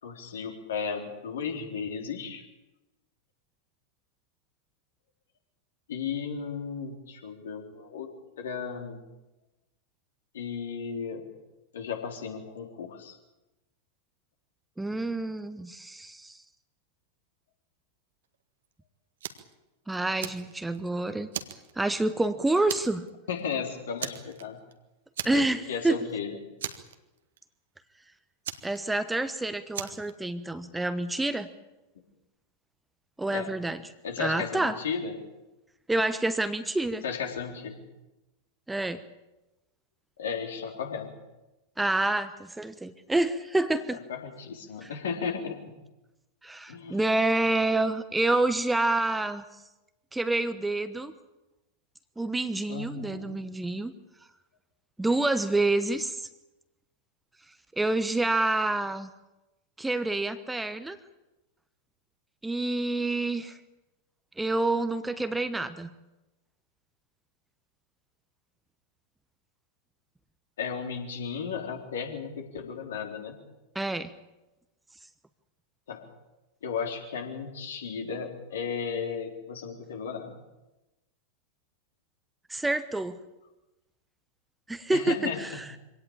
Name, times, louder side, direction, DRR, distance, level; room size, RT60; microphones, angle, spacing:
voice 1, 0.0-2.4 5.9-8.1 8.4-9.0 10.3-11.2 11.7-13.2 14.9-15.0 23.3-24.6 25.3-26.4 33.3-33.5 34.0-35.2 37.0-37.8 40.2-41.1 44.1-45.7 46.7-47.0 52.7-53.4 70.6-73.4 75.9-76.1 76.6-80.3 84.9-85.6, left 6 dB, 60° left, 4 dB, 3.7 m, -35 dB
voice 2, 14.8-16.4 19.9-21.3 21.8-23.1 25.2-26.0 28.6-31.5 33.2-33.8 34.2-34.8 35.9-37.0 38.7-39.0 41.8-44.0 46.4-49.4 50.1-51.1 52.2-53.9 55.0-56.3 57.8-59.1 59.8-61.0 62.4-63.6 64.4-65.9 73.7-74.1 82.5-83.2 84.7-85.6, right 2 dB, 5° right, 12 dB, 1.1 m, -28 dB
Fire, 19.2-19.5 19.9-20.9 21.3-22.3 22.7-23.1 23.4-23.5 24.0-24.7 25.2-25.7 26.0-26.1 26.6-27.4 28.4-29.3 29.7-30.1, right 9 dB, 60° right, 1.7 m, -37 dB
25.0 x 18.0 x 8.8 m, 0.99 s
figure-of-eight pair, 90°, 0 cm